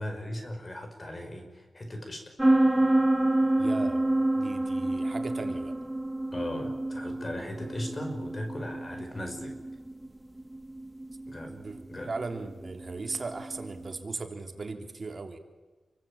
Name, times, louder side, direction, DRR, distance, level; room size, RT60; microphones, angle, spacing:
voice 1, 0.0-2.3 6.3-9.6 11.3-11.6 11.9-12.1, left 1 dB, 30° left, 5 dB, 5.8 m, -38 dB
sound 1, 2.4-13.9, right 1 dB, 10° right, 1.8 m, -28 dB
voice 2, 3.6-4.0 4.3-5.7 11.5-15.4, right 3 dB, 40° right, 5 dB, 3.4 m, -37 dB
29.0 x 23.5 x 8.8 m, 1.2 s
wide cardioid pair, 105°, 0 cm